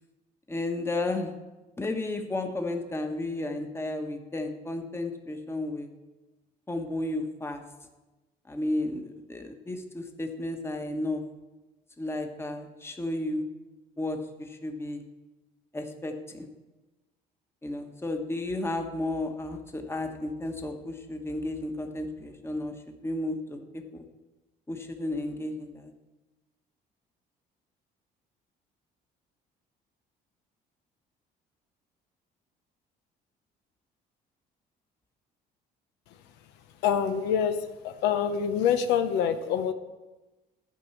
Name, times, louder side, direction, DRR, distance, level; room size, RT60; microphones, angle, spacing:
voice 1, 0.5-1.3 1.8-5.9 6.7-7.6 8.5-11.2 12.0-13.4 14.0-15.0 15.7-16.5 17.6-22.7 23.0-24.0 24.7-25.9, left 2 dB, 15° left, 4 dB, 1.2 m, -33 dB
voice 2, 36.8-37.6 37.8-39.7, left 8 dB, 90° left, 8 dB, 0.8 m, -25 dB
11.5 x 5.4 x 7.1 m, 1.1 s
cardioid pair, 110°, 17 cm